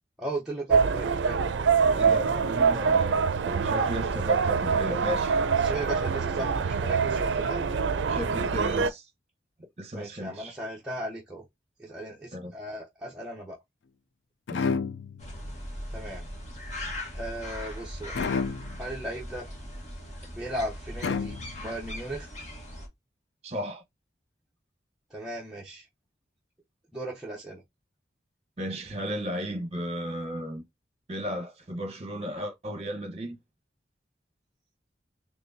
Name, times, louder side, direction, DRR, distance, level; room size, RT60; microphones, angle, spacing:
voice 1, 0.2-1.5 3.8-3.9 5.6-7.7 9.9-11.4 11.8-13.6 15.9-16.2 17.1-18.2 18.8-19.5 20.3-22.3 25.1-25.9 26.9-27.6, right 1 dB, 5° right, 0.7 m, -37 dB
sound 1, 0.7-8.9, right 5 dB, 85° right, 0.4 m, -25 dB
voice 2, 1.9-5.4 8.1-9.1 9.8-10.6 12.3-12.5 14.5-14.7 23.4-23.8 28.6-30.6 31.1-33.4, equal, 35° right, 1.0 m, -34 dB
sound 2, 14.5-15.4 18.1-18.9 21.0-21.8, left 5 dB, 90° left, 0.4 m, -30 dB
sound 3, 15.2-22.9, left 1 dB, 40° left, 1.4 m, -39 dB
4.4 x 3.0 x 2.7 m
head